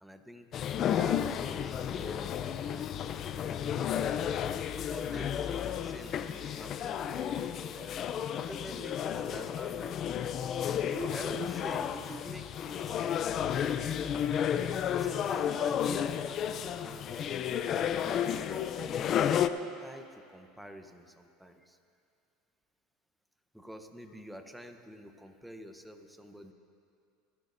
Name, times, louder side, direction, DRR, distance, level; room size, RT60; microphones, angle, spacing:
voice 1, 0.0-0.5 0.9-10.3 10.8-14.1 15.0-19.5 19.8-21.8 23.5-26.5, equal, ahead, 6 dB, 0.9 m, -47 dB
sound 1, 0.5-19.5, left 9 dB, 40° left, 0.4 m, -32 dB
28.5 x 11.0 x 2.6 m, 2.5 s
supercardioid pair, 125°, 0 cm